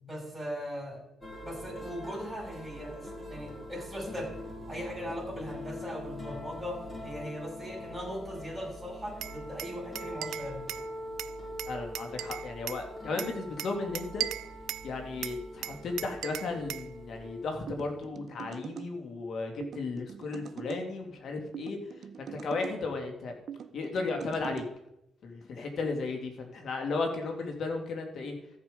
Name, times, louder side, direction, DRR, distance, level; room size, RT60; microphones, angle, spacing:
voice 1, 0.0-1.0 1.4-4.3 4.7-10.6, equal, ahead, -2 dB, 5.8 m, -39 dB
sound 1, 1.2-18.0, left 1 dB, 20° left, 5.4 m, -43 dB
Glass, 9.2-10.9 11.2-12.8 13.2-14.9 15.2-16.9, right 13 dB, 85° right, 0.4 m, -38 dB
voice 2, 11.7-14.3 14.8-23.3 23.7-24.6 25.2-28.4, left 3 dB, 60° left, 3 dB, 2.5 m, -35 dB
sound 2, 17.7-18.9 19.6-20.8 21.5-22.8 23.5-24.7, right 8 dB, 55° right, 0.7 m, -43 dB
14.0 x 7.7 x 5.2 m, 0.83 s
cardioid pair, 90°, 0 cm